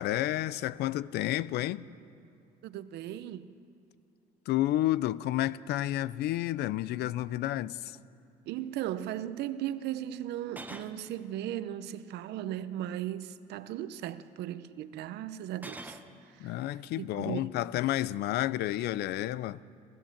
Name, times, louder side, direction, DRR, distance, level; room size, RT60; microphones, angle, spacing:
voice 1, 0.0-1.9 4.5-8.0 16.4-19.6, left 14 dB, 75° left, 0.5 m, -30 dB
voice 2, 2.6-3.5 8.5-16.0 16.3-16.6 17.0-17.4, right 12 dB, 80° right, 0.8 m, -37 dB
sound 1, 7.4-7.5 7.8-8.0 10.4-11.0 12.2-12.7 15.5-16.1, right 2 dB, 10° right, 1.1 m, -46 dB
27.5 x 14.5 x 7.3 m
cardioid pair, 110°, 17 cm